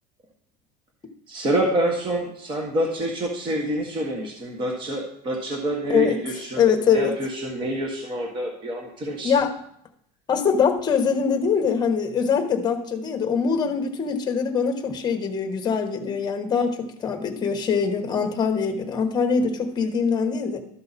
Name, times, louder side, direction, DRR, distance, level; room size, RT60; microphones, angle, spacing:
voice 1, 1.3-6.6 6.9-9.3, right 1 dB, 25° right, 0 dB, 1.3 m, -27 dB
voice 2, 6.5-7.1 9.2-9.5 10.3-20.6, left 6 dB, 20° left, 5 dB, 1.1 m, -23 dB
12.5 x 5.7 x 4.1 m, 0.69 s
supercardioid pair, 155°, 21 cm